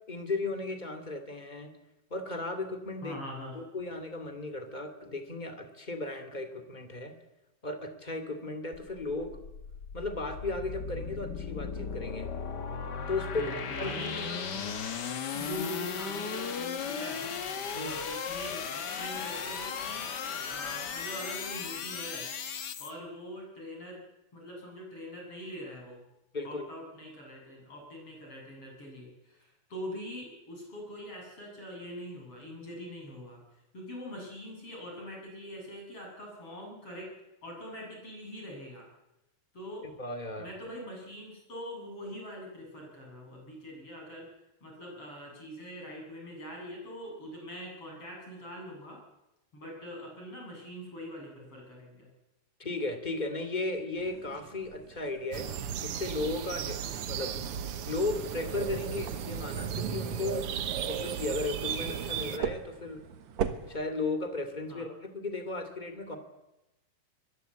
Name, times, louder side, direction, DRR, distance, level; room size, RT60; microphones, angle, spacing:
voice 1, 0.1-1.7 2.1-3.2 3.5-7.2 7.6-9.4 9.9-12.3 13.1-13.9 14.5-14.8 17.7-18.0 26.3-26.7 40.0-40.5 52.6-55.5 55.8-57.4 57.9-60.5 60.8-63.0 63.7-66.2, left 2 dB, 15° left, 7 dB, 2.0 m, -35 dB
voice 2, 3.0-3.6 13.3-14.4 15.3-17.4 17.7-20.1 20.5-22.3 22.8-24.0 24.3-26.0 26.4-37.1 37.4-38.9 39.5-39.9 40.4-44.3 44.6-49.0 49.5-52.1 64.7-64.9, equal, 35° left, 0 dB, 8.8 m, -43 dB
sound 1, 8.7-22.9, left 6 dB, 75° left, 0.9 m, -36 dB
sound 2, 54.0-63.8, right 7 dB, 55° right, 2.3 m, -42 dB
sound 3, 55.3-62.4, right 8 dB, 70° right, 1.3 m, -35 dB
24.0 x 21.5 x 8.3 m, 0.97 s
omnidirectional pair, 4.2 m